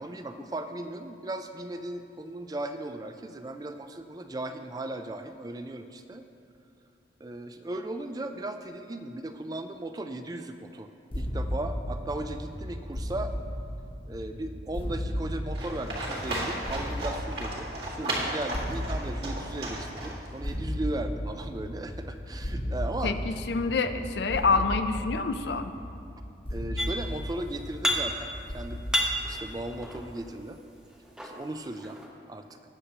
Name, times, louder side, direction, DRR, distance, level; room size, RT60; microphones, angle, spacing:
voice 1, 0.0-6.2 7.2-13.3 14.1-23.2 24.5-24.6 26.5-28.8 29.2-30.6 31.2-32.0 32.3-32.5, right 1 dB, 20° right, 7 dB, 0.4 m, -37 dB
sound 1, 11.1-30.0, equal, 30° left, 0.7 m, -36 dB
Livestock farm animals working animals, 15.5-20.5, right 1 dB, 60° right, 1.9 m, -34 dB
voice 2, 23.0-25.7, left 4 dB, 65° left, 8 dB, 0.5 m, -27 dB
sound 2, 26.8-27.3 27.6-28.4 28.7-30.3 30.9-32.1, left 1 dB, 5° right, 0.8 m, -31 dB
18.5 x 6.7 x 2.9 m, 2.5 s
head